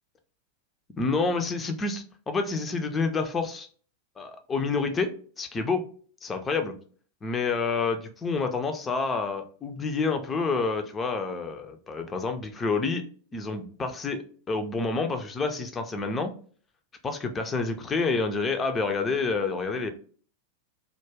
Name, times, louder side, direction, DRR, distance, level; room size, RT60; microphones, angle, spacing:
voice 1, 1.0-3.7 4.2-5.1 5.4-5.8 6.2-6.7 7.2-13.0 13.3-16.3 17.0-19.9, left 4 dB, 20° left, 6 dB, 0.4 m, -28 dB
2.2 x 2.1 x 3.2 m, 0.43 s
figure-of-eight pair, 90°, 0 cm